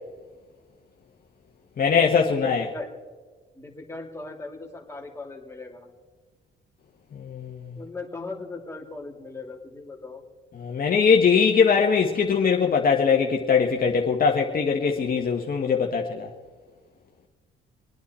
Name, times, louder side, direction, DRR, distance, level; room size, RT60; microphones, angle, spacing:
voice 1, 1.8-2.7 7.1-7.8 10.6-16.3, left 6 dB, 45° left, 1.4 m, -21 dB
voice 2, 2.3-2.9 3.5-5.9 7.8-10.2, left 3 dB, 15° left, 2.9 m, -38 dB
26.0 x 9.5 x 4.3 m
cardioid pair, 90°, 20 cm